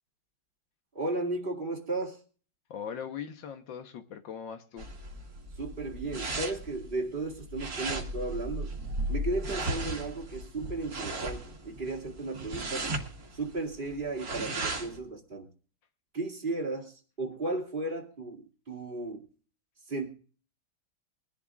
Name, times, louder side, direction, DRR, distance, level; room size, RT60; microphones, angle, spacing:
voice 1, 0.9-2.2 5.6-8.7 9.1-12.9 13.3-15.5 16.1-19.3 19.9-20.1, right 2 dB, 25° right, 0 dB, 2.4 m, -35 dB
voice 2, 2.7-4.9, left 7 dB, 90° left, 6 dB, 1.8 m, -40 dB
sound 1, 4.8-15.0, right 2 dB, 50° right, 2.3 m, -36 dB
22.5 x 11.5 x 2.5 m, 0.40 s
omnidirectional pair, 2.0 m